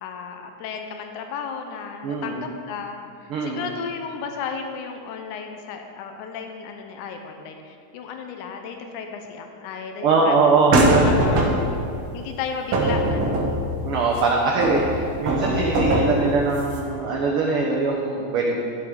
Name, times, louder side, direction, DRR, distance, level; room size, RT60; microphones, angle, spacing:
voice 1, 0.0-10.4 10.6-11.5 12.1-13.7, left 6 dB, 85° left, 4 dB, 2.2 m, -34 dB
voice 2, 2.0-2.4 3.3-3.6 10.0-11.5 13.8-18.6, right 3 dB, 75° right, -1 dB, 1.3 m, -22 dB
sound 1, 10.7-11.9 12.7-14.2 14.6-16.8, right 1 dB, 55° right, 1.6 m, -21 dB
12.0 x 7.7 x 3.7 m, 2.5 s
omnidirectional pair, 3.5 m